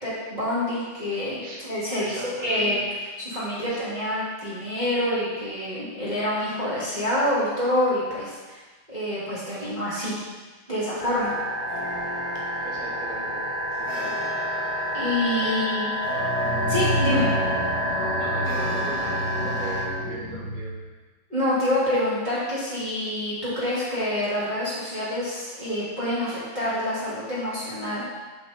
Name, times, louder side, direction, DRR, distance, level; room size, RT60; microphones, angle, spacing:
voice 1, 0.0-2.8 3.2-8.6 8.9-10.2 10.7-11.3 14.9-15.9 16.7-17.3 21.3-28.0, left 1 dB, 20° right, -10 dB, 1.3 m, -27 dB
voice 2, 2.0-2.8 3.7-3.8 9.5-9.7 12.6-13.5 13.8-14.2 15.4-15.6 18.2-20.7 23.6-23.7, right 3 dB, 75° right, -4 dB, 4.0 m, -39 dB
sound 1, 11.0-19.9, equal, 60° left, 2.3 m, -28 dB
sound 2, 16.2-20.7, equal, 85° left, 1.3 m, -29 dB
11.0 x 6.2 x 4.3 m, 1.3 s
omnidirectional pair, 5.6 m